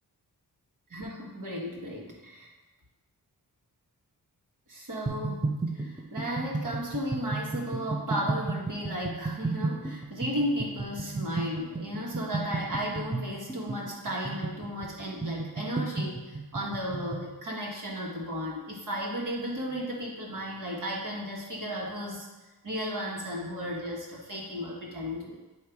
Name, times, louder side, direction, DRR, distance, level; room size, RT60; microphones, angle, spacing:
voice 1, 0.9-2.5 4.7-22.3 22.6-25.4, equal, 55° right, -4 dB, 1.6 m, -34 dB
sound 1, 5.1-17.3, right 3 dB, 10° right, 0.6 m, -33 dB
8.4 x 2.9 x 4.6 m, 1.2 s
wide cardioid pair, 95°, 37 cm